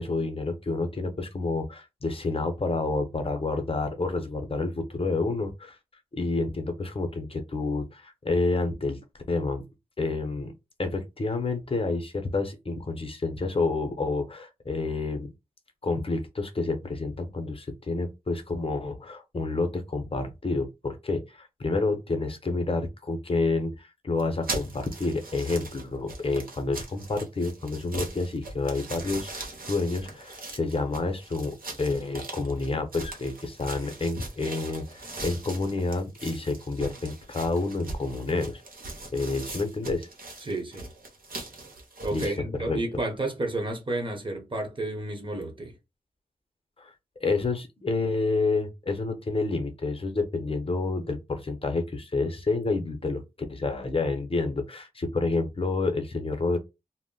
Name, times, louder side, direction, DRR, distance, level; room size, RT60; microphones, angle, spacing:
voice 1, 0.0-5.8 6.1-9.0 9.3-9.6 10.0-10.5 10.8-15.3 15.8-38.6 39.1-40.1 42.1-42.3 42.7-42.8 46.8-46.9 47.2-53.2 53.5-56.6, left 3 dB, 40° left, 0.7 m, -29 dB
sound 1, 24.2-42.3, right 2 dB, 75° right, 0.9 m, -40 dB
voice 2, 40.4-40.9 42.0-45.7, right 2 dB, 35° right, 0.9 m, -31 dB
2.1 x 2.1 x 3.7 m
cardioid pair, 50°, 15 cm